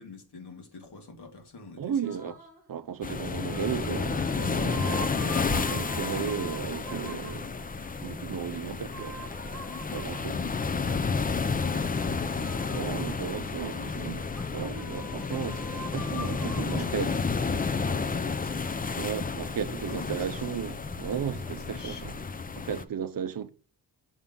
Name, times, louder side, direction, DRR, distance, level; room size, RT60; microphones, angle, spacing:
voice 1, 0.0-2.3 13.7-14.2 16.6-18.7 19.9-20.7 21.4-22.3, left 3 dB, 70° left, 2.2 m, -46 dB
voice 2, 1.8-2.4 2.7-7.5 8.0-9.3 9.9-10.3 12.7-14.2 14.5-17.1 19.0-22.1 22.5-23.5, right 8 dB, 55° right, 0.6 m, -35 dB
sound 1, 2.0-2.7 3.3-7.5 8.9-10.4 11.5-13.2 14.3-16.8, right 1 dB, 5° left, 2.0 m, -45 dB
sound 2, 3.0-22.8, left 4 dB, 25° left, 0.3 m, -31 dB
sound 3, 3.7-22.2, right 3 dB, 25° right, 1.3 m, -50 dB
7.1 x 3.7 x 5.5 m
wide cardioid pair, 175°, 41 cm